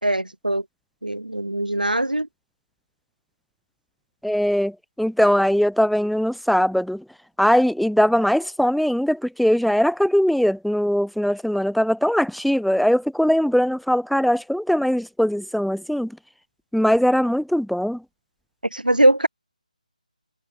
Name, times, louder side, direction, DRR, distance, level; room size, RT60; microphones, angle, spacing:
voice 1, 0.0-0.6 1.0-2.3 18.7-19.3, right 1 dB, 90° right, 3.6 m, -21 dB
voice 2, 4.2-7.0 7.4-16.1 16.7-18.0, equal, ahead, 1.4 m, -20 dB
figure-of-eight pair, 155°, 4 cm